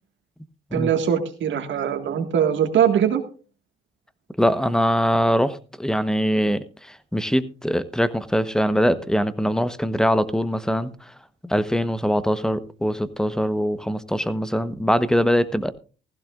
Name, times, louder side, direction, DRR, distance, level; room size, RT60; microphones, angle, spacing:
voice 1, 0.7-3.2, right 8 dB, 70° right, 1.7 m, -21 dB
voice 2, 4.4-10.9 11.4-15.7, equal, 5° left, 1.0 m, -22 dB
15.5 x 15.5 x 2.4 m
cardioid pair, 90°, 20 cm